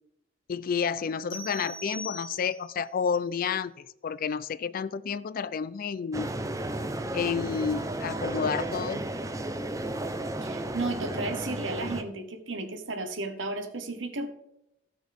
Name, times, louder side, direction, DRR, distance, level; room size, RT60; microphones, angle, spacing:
voice 1, 0.5-6.3 7.1-9.1, left 6 dB, 50° left, 17 dB, 0.3 m, -30 dB
sound 1, 1.3-2.8, left 1 dB, 65° left, 2.9 m, -41 dB
sound 2, 6.1-12.0, right 1 dB, 15° right, 0.6 m, -33 dB
voice 2, 10.4-14.3, right 2 dB, 80° right, 6 dB, 1.1 m, -34 dB
14.5 x 6.3 x 3.4 m, 0.84 s
head